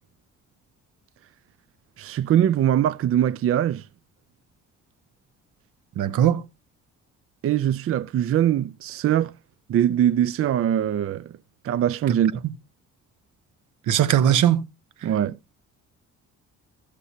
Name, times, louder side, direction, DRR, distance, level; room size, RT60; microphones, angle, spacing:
voice 1, 2.0-3.8 7.4-9.3 9.7-11.3 11.6-12.3 15.0-15.4, right 10 dB, 50° right, 0.5 m, -22 dB
voice 2, 6.0-6.4 13.9-14.6, right 10 dB, 80° right, 1.0 m, -19 dB
16.5 x 6.7 x 2.8 m
cardioid pair, 90°, 30 cm